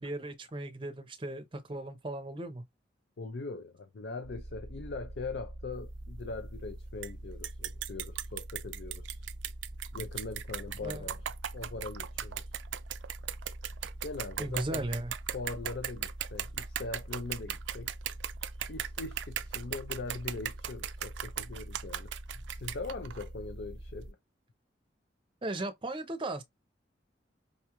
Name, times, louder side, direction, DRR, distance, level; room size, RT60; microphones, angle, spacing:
voice 1, 0.0-2.6 10.8-11.1 14.4-15.1 25.4-26.4, right 2 dB, 30° right, 0.6 m, -37 dB
voice 2, 3.2-9.2 9.9-11.2 11.5-12.6 14.0-14.8 15.3-17.9 18.7-24.2, left 3 dB, 60° left, 0.5 m, -41 dB
sound 1, 4.2-24.1, right 1 dB, 5° right, 1.0 m, -45 dB
sound 2, 7.0-7.1 7.4-23.3, right 11 dB, 80° right, 0.4 m, -37 dB
5.3 x 2.3 x 2.9 m
head